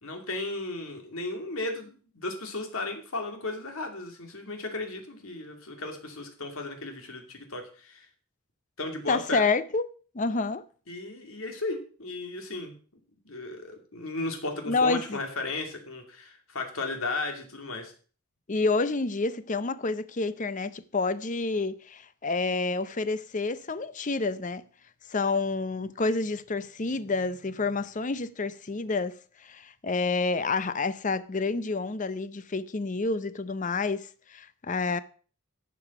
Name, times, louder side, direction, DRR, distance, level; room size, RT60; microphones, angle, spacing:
voice 1, 0.0-8.1 8.8-9.4 10.9-12.7 13.2-17.9, left 2 dB, 70° left, 2.6 m, -35 dB
voice 2, 9.1-9.8 10.1-10.6 14.7-15.2 18.5-24.6 25.1-35.0, left 3 dB, 35° left, 0.6 m, -29 dB
11.5 x 7.0 x 6.0 m
head